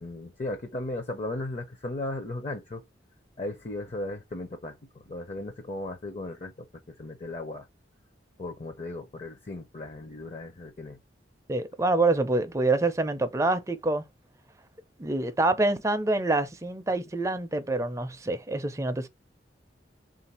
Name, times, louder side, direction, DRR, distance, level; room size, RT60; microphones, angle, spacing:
voice 1, 0.0-2.8 3.4-7.7 8.4-11.0, left 2 dB, 35° left, 0.5 m, -36 dB
voice 2, 11.5-14.0 15.0-19.1, right 2 dB, 15° right, 0.4 m, -26 dB
3.6 x 2.5 x 4.2 m
head